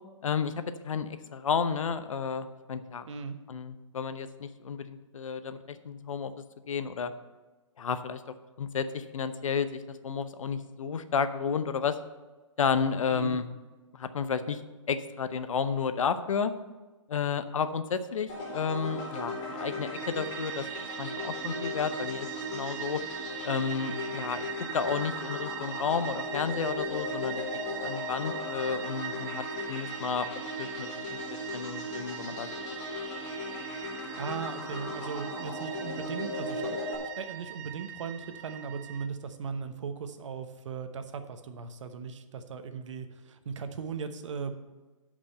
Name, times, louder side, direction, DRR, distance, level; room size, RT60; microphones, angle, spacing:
voice 1, 0.2-0.5 0.8-3.1 3.5-6.3 6.7-7.1 7.8-8.2 8.6-12.0 12.6-13.4 13.9-14.6 14.9-16.5 17.1-20.7 21.0-23.0 23.4-24.5 24.7-29.4 29.7-30.3 30.6-31.1 31.5-32.5, left 6 dB, 80° left, 11 dB, 0.8 m, -32 dB
sound 1, 18.3-36.9, left 2 dB, 35° left, 2.7 m, -37 dB
sound 2, 19.9-39.1, right 11 dB, 35° right, 0.6 m, -41 dB
voice 2, 34.2-36.8 37.2-44.5, right 5 dB, 65° right, 8 dB, 1.0 m, -38 dB
8.6 x 5.3 x 7.6 m, 1.2 s
hypercardioid pair, 155°, 17 cm